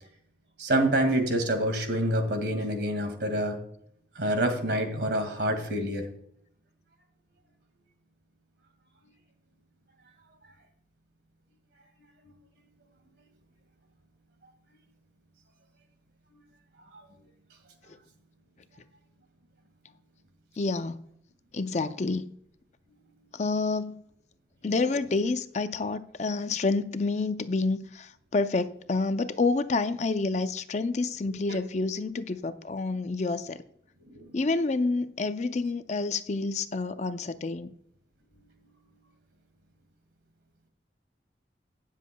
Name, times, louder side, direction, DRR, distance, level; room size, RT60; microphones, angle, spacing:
voice 1, 0.6-3.6 4.2-6.0 34.1-34.2, right 1 dB, 65° right, 2.0 m, -27 dB
voice 2, 20.6-21.0 21.5-22.3 23.3-24.0 24.6-33.6 34.3-37.7, left 3 dB, 40° left, 0.5 m, -28 dB
18.0 x 7.3 x 2.3 m
head